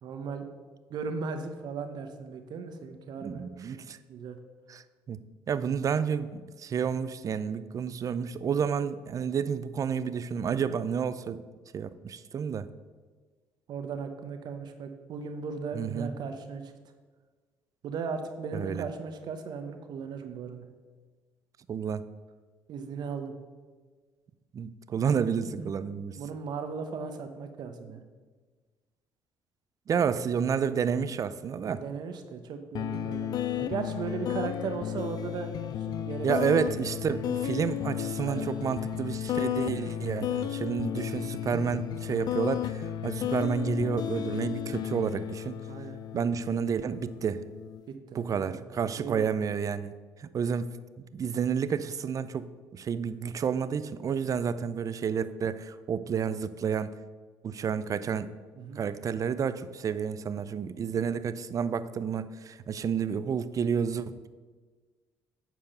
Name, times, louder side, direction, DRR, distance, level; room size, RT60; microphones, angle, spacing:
voice 1, 0.0-0.4 0.9-3.4 4.1-4.4 13.7-16.7 17.8-20.6 22.7-23.4 25.5-25.7 26.2-28.0 31.6-35.5 35.8-36.6 38.2-38.5 45.7-46.0 47.9-48.6 49.0-49.3 58.6-58.8, right 5 dB, 60° right, 7 dB, 1.1 m, -37 dB
voice 2, 3.2-4.0 4.7-5.2 5.5-11.4 11.7-12.7 15.7-16.1 18.5-18.9 21.7-22.0 24.5-26.2 29.9-31.8 36.2-45.6 46.1-47.4 48.1-49.9 50.2-56.9 57.4-58.3 58.8-64.3, right 7 dB, 45° right, 14 dB, 0.5 m, -30 dB
sound 1, 32.7-47.8, left 10 dB, 55° left, 0.4 m, -33 dB
9.2 x 4.8 x 6.7 m, 1.4 s
supercardioid pair, 65°, 8 cm